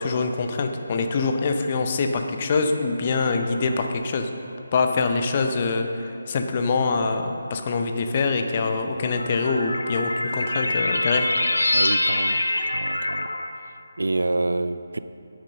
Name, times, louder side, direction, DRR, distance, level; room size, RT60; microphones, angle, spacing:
voice 1, 0.0-4.3 4.7-11.3, left 4 dB, 30° left, 5 dB, 0.7 m, -24 dB
sound 1, 3.3-4.0 4.9-5.0 6.1-6.2 8.4-13.5, left 2 dB, 70° left, 0.9 m, -26 dB
voice 2, 11.7-12.4 12.7-13.3 14.0-15.0, right 2 dB, 65° right, 12 dB, 0.4 m, -27 dB
9.3 x 8.9 x 5.5 m, 2.7 s
figure-of-eight pair, 150°, 0 cm